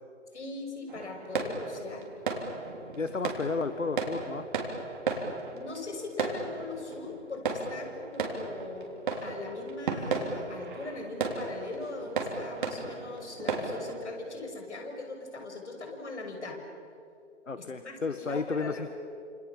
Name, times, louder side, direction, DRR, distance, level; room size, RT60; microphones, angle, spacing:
voice 1, 0.3-2.1 5.5-9.0 9.2-16.6 17.5-19.0, left 3 dB, 65° left, 4 dB, 6.7 m, -40 dB
sound 1, 0.9-14.0, right 4 dB, 40° right, 3.8 m, -35 dB
voice 2, 2.9-4.4 17.5-18.9, left 4 dB, 80° left, 10 dB, 1.6 m, -32 dB
29.5 x 27.5 x 7.3 m, 2.5 s
figure-of-eight pair, 150°, 37 cm